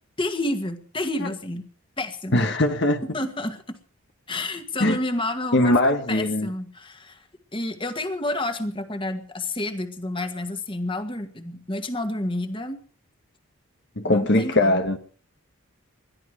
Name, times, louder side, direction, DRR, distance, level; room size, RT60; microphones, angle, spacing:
voice 1, 0.2-1.7 2.0-2.4 3.0-3.8 4.3-5.8 6.1-7.2 7.5-12.8 14.0-14.8, left 1 dB, 25° left, 1.8 m, -29 dB
voice 2, 2.3-3.0 4.8-5.0 5.5-6.5 14.0-15.0, left 1 dB, 55° left, 1.4 m, -21 dB
21.5 x 13.0 x 4.9 m
head